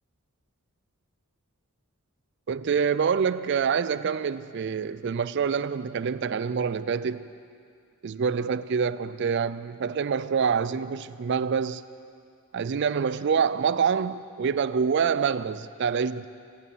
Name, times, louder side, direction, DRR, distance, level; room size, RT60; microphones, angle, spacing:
voice 1, 2.5-7.2 8.0-11.8 12.5-16.3, right 6 dB, 50° right, 0.4 m, -26 dB
14.5 x 14.0 x 6.9 m
head